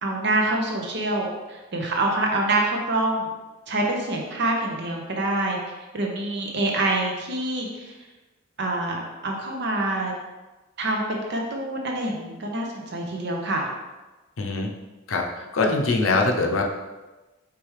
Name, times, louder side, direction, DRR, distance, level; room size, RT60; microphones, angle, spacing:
voice 1, 0.0-3.3 3.7-5.6 5.9-7.9 8.6-10.1 10.8-13.7, right 2 dB, 55° right, 0 dB, 0.8 m, -26 dB
voice 2, 14.4-14.7 15.1-16.6, left 3 dB, 75° left, 2 dB, 0.6 m, -23 dB
4.8 x 3.4 x 3.2 m, 1.2 s
head